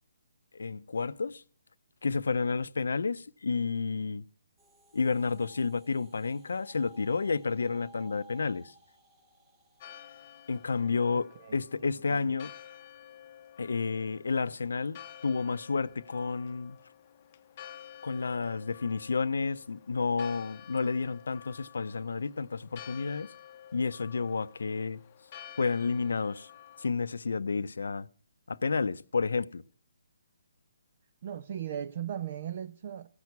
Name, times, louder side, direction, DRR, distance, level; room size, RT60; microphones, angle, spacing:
voice 1, 0.5-1.4 2.0-4.2 4.9-8.7 10.5-12.5 13.6-16.8 18.0-23.3 23.7-25.0 25.6-26.5 26.8-28.1 28.5-29.6, left 4 dB, 75° left, 0.6 m, -31 dB
sound 1, 4.6-12.9, right 1 dB, 20° right, 2.4 m, -59 dB
Church bell, 9.8-26.9, left 10 dB, 35° left, 0.7 m, -51 dB
voice 2, 11.1-11.5 12.1-12.3 31.2-33.1, right 10 dB, 50° right, 0.8 m, -38 dB
15.5 x 6.1 x 9.5 m
hypercardioid pair, 150°, 0 cm